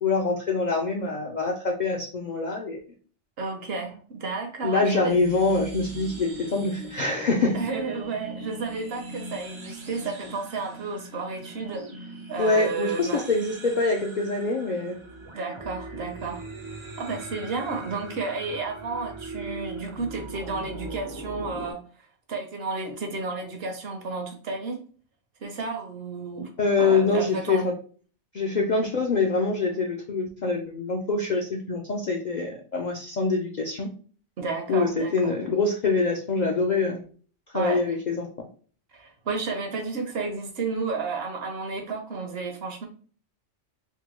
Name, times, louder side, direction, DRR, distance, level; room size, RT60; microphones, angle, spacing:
voice 1, 0.0-2.8 4.6-7.6 12.4-15.0 26.6-27.7 28.3-33.9 34.7-37.0 37.5-38.5, left 3 dB, 60° left, 0 dB, 0.4 m, -25 dB
voice 2, 3.4-5.1 7.5-13.3 15.3-16.4 17.0-21.8 22.3-24.8 25.4-26.5 26.8-27.7 34.4-35.4 37.5-37.8 38.9-42.9, right 4 dB, 60° right, 4 dB, 0.8 m, -32 dB
sound 1, 5.1-21.7, right 2 dB, 40° right, 0.4 m, -41 dB
3.6 x 2.2 x 3.0 m, 0.42 s
omnidirectional pair, 1.2 m